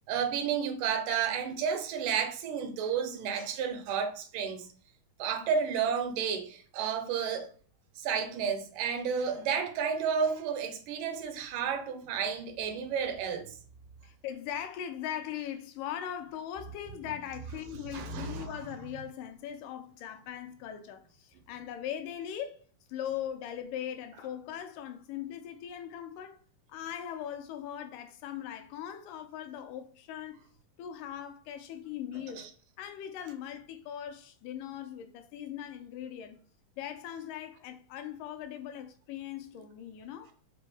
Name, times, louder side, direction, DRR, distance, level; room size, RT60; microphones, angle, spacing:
voice 1, 0.1-4.7 5.2-7.5 8.0-13.5 17.9-18.6 32.4-32.5, right 7 dB, 90° right, 2.2 m, -31 dB
voice 2, 14.0-22.6 22.9-26.4 26.7-30.5 30.8-36.4 36.8-40.3, left 10 dB, 85° left, 2.1 m, -40 dB
5.3 x 2.0 x 3.3 m
omnidirectional pair, 3.7 m